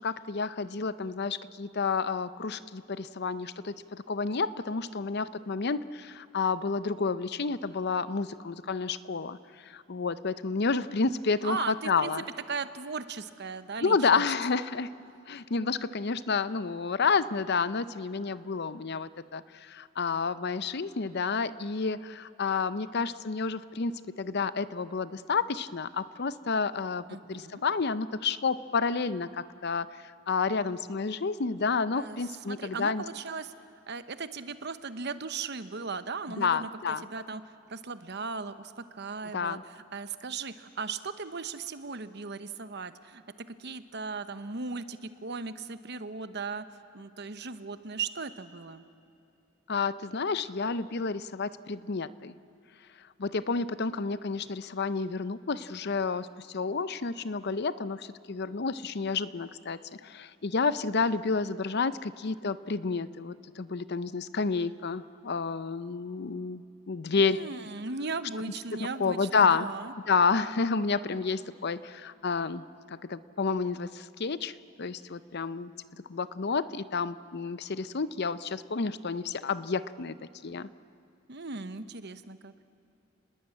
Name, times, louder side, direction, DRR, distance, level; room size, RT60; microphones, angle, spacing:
voice 1, 0.0-9.4 9.6-12.2 13.8-14.9 15.3-30.0 30.3-33.0 36.4-37.0 39.3-39.6 49.7-52.3 53.2-66.6 66.9-67.4 69.0-69.7 70.1-72.6 73.1-75.7 76.1-80.1 80.4-80.7, left 4 dB, 50° left, 15 dB, 0.6 m, -30 dB
voice 2, 11.4-12.1 12.5-14.1 27.1-27.6 31.9-33.5 33.9-36.7 37.0-43.2 43.5-46.6 46.9-48.8 67.1-69.9 81.3-82.5, right 4 dB, 55° right, 11 dB, 1.0 m, -37 dB
29.5 x 20.5 x 8.7 m, 2.8 s
head